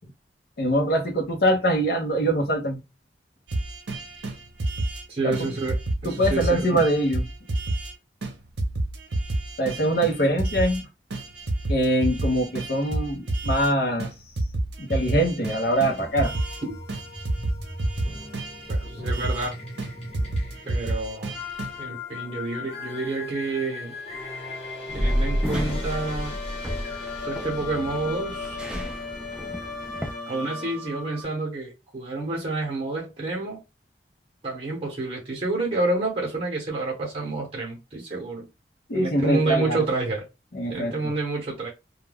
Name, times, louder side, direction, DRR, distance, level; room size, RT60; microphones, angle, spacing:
voice 1, 0.6-2.8 5.2-5.5 6.0-7.3 9.6-10.9 11.7-14.1 14.8-16.3 38.9-39.8 40.5-41.1, right 1 dB, 55° left, 0.6 m, -23 dB
sound 1, 3.5-5.0 5.3-7.9 8.2-8.3 8.6-10.8 11.1-13.7 14.0-16.6 16.9-19.5 19.8-21.8, right 2 dB, 75° right, 0.6 m, -29 dB
voice 2, 5.1-6.8 16.7-16.8 18.7-19.5 20.7-21.3 21.8-23.9 24.9-26.3 27.2-28.6 30.3-33.6 34.4-38.5 38.9-40.3 40.7-41.7, right 3 dB, 35° right, 0.8 m, -29 dB
sound 2, 15.8-31.2, left 3 dB, 35° left, 1.0 m, -37 dB
sound 3, 24.9-30.1, equal, 5° right, 0.3 m, -30 dB
2.2 x 2.2 x 3.3 m
head